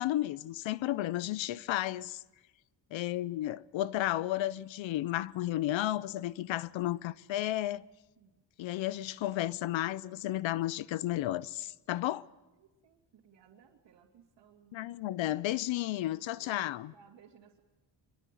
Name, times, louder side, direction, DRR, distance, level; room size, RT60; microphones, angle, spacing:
voice 1, 0.0-2.2 2.9-7.8 8.6-12.3 14.7-16.9, left 14 dB, 80° left, 0.8 m, -33 dB
voice 2, 12.5-15.0 16.4-17.6, right 7 dB, 65° right, 3.0 m, -60 dB
24.5 x 22.5 x 9.2 m
cardioid pair, 120°, 45 cm